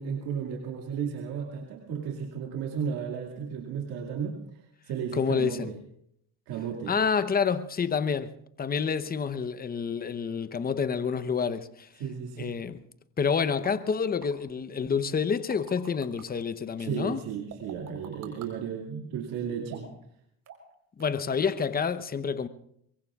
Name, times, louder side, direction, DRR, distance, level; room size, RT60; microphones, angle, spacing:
voice 1, 0.0-4.3 4.9-5.8 6.5-6.9 12.0-12.5 16.8-19.9, right 7 dB, 75° right, 2.4 m, -34 dB
voice 2, 5.1-5.7 6.9-8.3 8.6-11.9 12.4-12.8 13.2-17.2 21.0-22.5, left 6 dB, 25° left, 0.9 m, -28 dB
sound 1, 13.6-13.7 14.2-14.3 15.2-16.2 17.5-18.5 19.7-20.0 20.5-20.7 21.0-21.3 21.6-21.7, right 8 dB, 55° right, 4.2 m, -46 dB
23.5 x 22.5 x 2.5 m
supercardioid pair, 85°, 37 cm